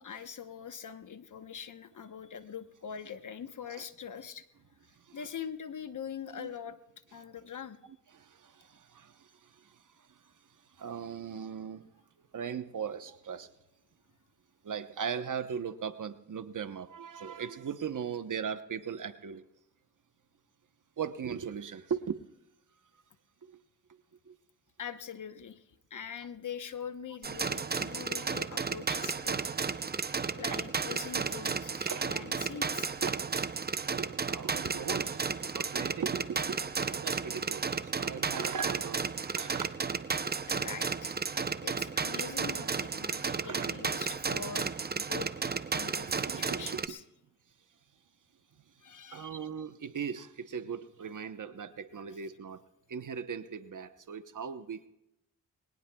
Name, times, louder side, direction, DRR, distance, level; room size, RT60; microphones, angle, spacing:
voice 1, 0.0-4.5 5.1-6.8 7.1-7.8 24.8-25.6 25.9-29.4 30.3-32.9 40.4-41.2 41.6-45.3 45.7-47.0 48.8-49.3, left 7 dB, 60° left, 10 dB, 1.0 m, -43 dB
voice 2, 8.1-10.3 10.8-11.9 12.3-13.5 14.6-19.4 21.0-22.2 23.4-23.6 23.9-24.4 30.5-30.6 31.8-32.3 33.0-33.4 33.9-36.6 36.9-39.8 43.3-43.7 46.1-47.0 49.1-52.6 52.9-54.9, right 7 dB, 60° right, 10 dB, 1.0 m, -39 dB
sound 1, 27.2-46.9, right 5 dB, 30° right, 0.6 m, -33 dB
21.5 x 18.5 x 2.3 m, 0.84 s
cardioid pair, 70°, 35 cm